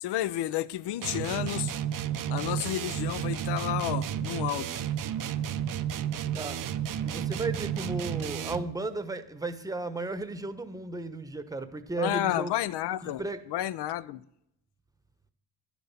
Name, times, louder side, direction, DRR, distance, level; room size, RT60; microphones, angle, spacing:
voice 1, 0.0-1.7 2.3-4.7 12.0-13.2 13.5-14.2, left 13 dB, 70° left, 0.5 m, -31 dB
sound 1, 1.0-8.8, right 9 dB, 50° right, 0.6 m, -32 dB
voice 2, 6.3-6.7 7.0-12.5 13.0-13.4, right 2 dB, 10° right, 0.9 m, -34 dB
10.5 x 7.1 x 5.7 m
cardioid pair, 75°, 43 cm